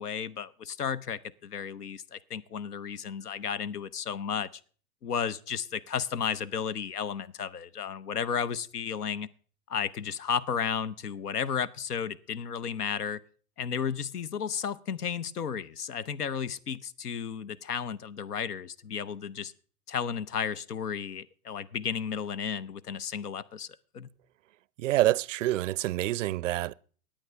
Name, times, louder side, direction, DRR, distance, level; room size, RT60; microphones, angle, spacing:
voice 1, 0.0-4.6 5.0-9.3 9.7-13.2 13.6-19.5 19.9-23.7 23.9-24.1, left 7 dB, 85° left, 0.8 m, -33 dB
voice 2, 24.8-26.7, right 15 dB, 55° right, 0.5 m, -27 dB
20.5 x 8.6 x 3.3 m
hypercardioid pair, 105°, 45 cm